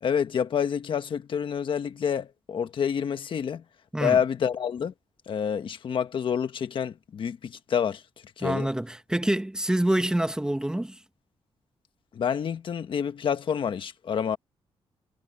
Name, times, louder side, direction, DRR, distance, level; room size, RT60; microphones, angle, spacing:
voice 1, 0.0-3.6 4.0-4.9 5.3-8.0 8.4-8.7 12.1-14.4, left 7 dB, 55° left, 1.3 m, -28 dB
voice 2, 8.4-11.0, right 1 dB, 5° right, 1.2 m, -26 dB
wide cardioid pair, 140°, 10 cm